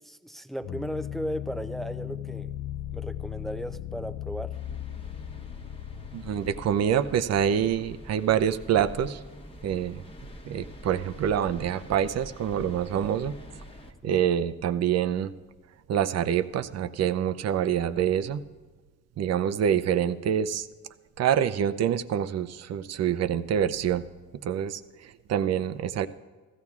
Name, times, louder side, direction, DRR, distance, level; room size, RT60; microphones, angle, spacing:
voice 1, 0.0-2.5 2.9-4.6 14.0-14.1, equal, ahead, 9 dB, 0.5 m, -36 dB
sound 1, 0.6-7.8, left 12 dB, 70° left, 0.4 m, -38 dB
sound 2, 4.5-13.9, equal, 20° left, 1.1 m, -45 dB
voice 2, 6.1-9.2 9.6-10.0 10.4-13.4 14.0-15.3 15.9-18.4 19.2-20.7 21.2-24.0 24.4-26.1, right 9 dB, 60° right, 12 dB, 0.6 m, -26 dB
15.5 x 14.5 x 2.4 m, 1.3 s
cardioid pair, 90°, 30 cm